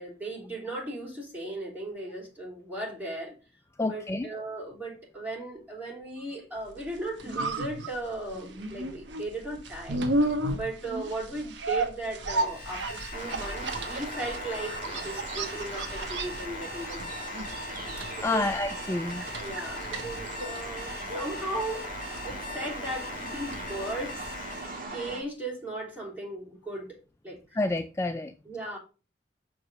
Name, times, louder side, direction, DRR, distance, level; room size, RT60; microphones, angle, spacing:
voice 1, 0.0-3.4 3.8-10.0 10.5-17.3 18.1-18.5 19.4-21.9 22.2-24.2 24.9-27.0 27.2-27.6 28.4-28.8, right 2 dB, 10° right, 3.5 m, -37 dB
voice 2, 3.8-4.3 18.2-19.2 27.5-28.3, left 2 dB, 15° left, 0.3 m, -28 dB
sound 1, 6.8-24.8 25.1-25.2, right 2 dB, 75° right, 1.1 m, -34 dB
Alarm, 12.3-24.8, left 4 dB, 50° left, 1.4 m, -42 dB
sound 2, 13.1-25.2, right 2 dB, 50° right, 2.1 m, -39 dB
6.4 x 4.8 x 5.0 m
head